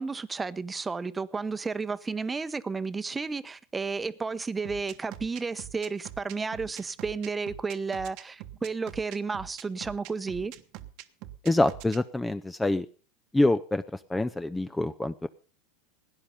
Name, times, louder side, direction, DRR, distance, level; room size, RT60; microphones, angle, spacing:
voice 1, 0.0-10.5, right 4 dB, 15° right, 0.9 m, -32 dB
sound 1, 4.6-12.0, right 15 dB, 55° right, 1.1 m, -43 dB
voice 2, 11.4-12.9 13.3-13.8 14.1-15.3, left 2 dB, 10° left, 0.6 m, -25 dB
17.0 x 10.0 x 5.3 m
hypercardioid pair, 90°, 0 cm